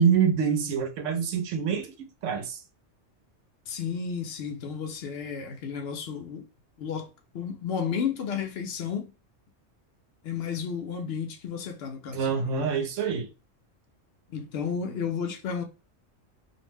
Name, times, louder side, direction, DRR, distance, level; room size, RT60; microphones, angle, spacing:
voice 1, 0.0-1.9 2.2-2.6 12.1-13.3, right 6 dB, 85° right, 1.0 m, -25 dB
voice 2, 3.7-6.5 6.8-7.1 7.3-9.1 10.2-12.8 14.3-15.6, left 6 dB, 65° left, 0.7 m, -32 dB
2.5 x 2.1 x 3.3 m
omnidirectional pair, 1.2 m